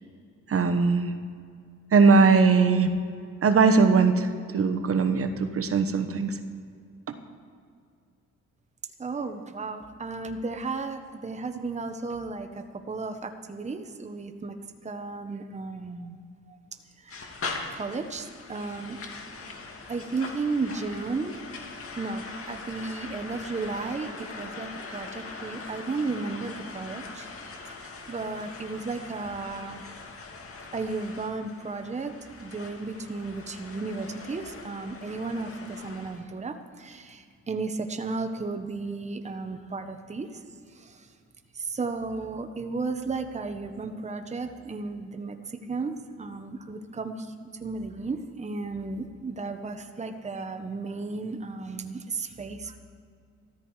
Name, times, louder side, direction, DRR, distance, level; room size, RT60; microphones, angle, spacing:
voice 1, 0.5-1.1 1.9-2.9 3.4-6.4 7.1-7.2, right 4 dB, 50° right, 7 dB, 1.2 m, -20 dB
voice 2, 9.0-14.6 14.8-16.2 16.5-16.6 17.0-17.3 17.7-19.0 19.9-21.4 21.9-27.3 27.6-30.0 30.7-40.4 40.7-41.1 41.5-47.3 47.6-52.8, right 3 dB, 25° right, 6 dB, 1.1 m, -34 dB
sound 1, 17.1-36.2, left 3 dB, 45° left, 2.3 m, -41 dB
15.0 x 13.5 x 4.9 m, 2.3 s
cardioid pair, 90°, 30 cm